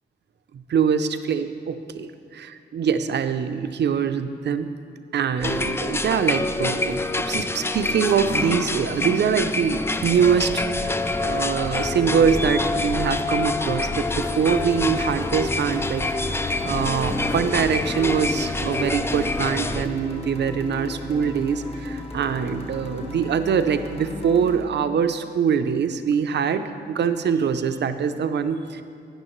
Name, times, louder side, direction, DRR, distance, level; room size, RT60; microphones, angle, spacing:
voice 1, 0.5-2.1 2.4-4.7 5.1-28.8, right 7 dB, 65° right, 10 dB, 0.5 m, -24 dB
sound 1, 5.4-19.9, left 2 dB, 15° left, 0.3 m, -26 dB
sound 2, 14.0-24.6, left 2 dB, 30° left, 1.2 m, -34 dB
12.0 x 9.3 x 3.1 m, 2.3 s
cardioid pair, 105°, 19 cm